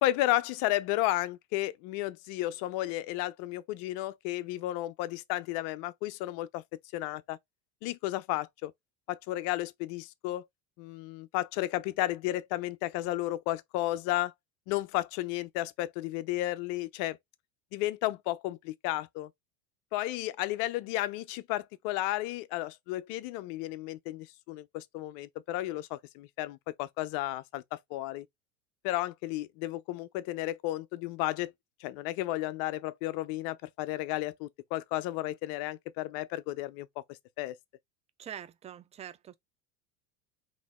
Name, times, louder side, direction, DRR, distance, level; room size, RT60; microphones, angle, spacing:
voice 1, 0.0-6.6 6.9-7.4 7.8-8.7 9.1-10.5 10.8-14.3 14.7-17.2 17.7-19.3 19.9-28.3 28.8-31.5 31.8-37.6, left 16 dB, 55° left, 0.6 m, -33 dB
voice 2, 38.2-39.3, right 10 dB, 20° right, 0.3 m, -44 dB
4.1 x 3.0 x 3.5 m
supercardioid pair, 120°, 37 cm